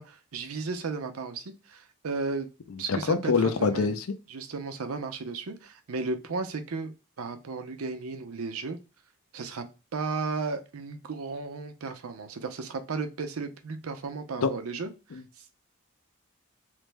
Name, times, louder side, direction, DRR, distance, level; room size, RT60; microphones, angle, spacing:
voice 1, 0.0-2.5 2.8-4.0 4.3-8.8 9.3-9.6 9.9-15.4, right 4 dB, 85° right, 7 dB, 0.6 m, -34 dB
voice 2, 2.9-3.9 14.4-14.5, left 5 dB, 75° left, 9 dB, 0.5 m, -24 dB
3.2 x 2.0 x 3.2 m, 0.30 s
head